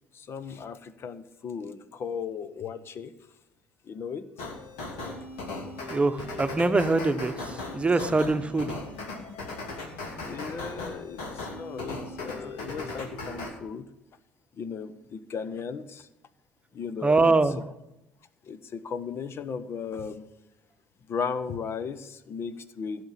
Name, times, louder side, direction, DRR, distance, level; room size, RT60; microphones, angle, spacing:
voice 1, 0.1-3.1 3.8-4.5 10.2-13.9 14.6-16.1 16.7-17.6 18.4-20.3 21.1-23.0, left 6 dB, 40° left, 14 dB, 1.0 m, -36 dB
sound 1, 4.4-13.5, left 2 dB, 70° left, 2.9 m, -38 dB
voice 2, 5.9-8.7 17.0-17.6, right 3 dB, 20° right, 10 dB, 1.1 m, -24 dB
15.5 x 6.8 x 7.4 m, 0.90 s
figure-of-eight pair, 55°, 6 cm